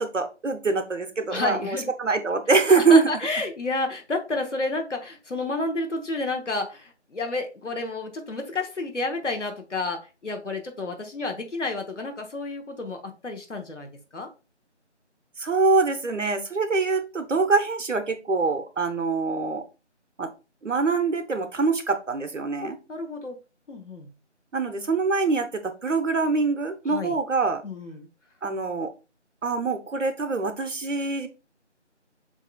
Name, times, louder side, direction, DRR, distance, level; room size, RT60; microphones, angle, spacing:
voice 1, 0.0-3.0 15.4-19.6 20.2-20.3 20.6-22.8 24.5-27.6 28.4-28.9 29.4-31.3, right 4 dB, 90° right, 8 dB, 0.9 m, -24 dB
voice 2, 1.3-1.9 2.7-14.3 22.6-23.4 23.7-24.1 26.9-27.2 27.6-28.1, left 3 dB, 80° left, 3 dB, 1.0 m, -30 dB
7.2 x 2.7 x 2.2 m, 0.31 s
figure-of-eight pair, 170°, 36 cm